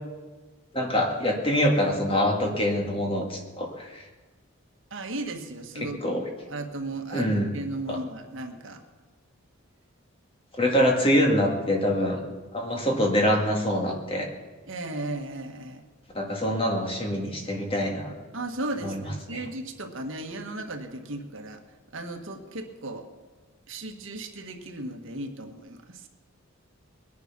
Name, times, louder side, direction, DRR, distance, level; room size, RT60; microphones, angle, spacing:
voice 1, 0.7-4.0 5.8-6.2 7.1-7.5 7.9-8.0 10.6-12.2 12.5-14.3 16.1-18.1 18.8-19.0 19.3-19.5, equal, 25° left, 1 dB, 2.1 m, -25 dB
voice 2, 4.9-6.2 6.5-8.8 14.7-15.8 18.3-21.6 21.9-23.0 23.7-26.1, right 2 dB, 65° right, 4 dB, 1.6 m, -35 dB
20.5 x 10.5 x 6.1 m, 1.3 s
head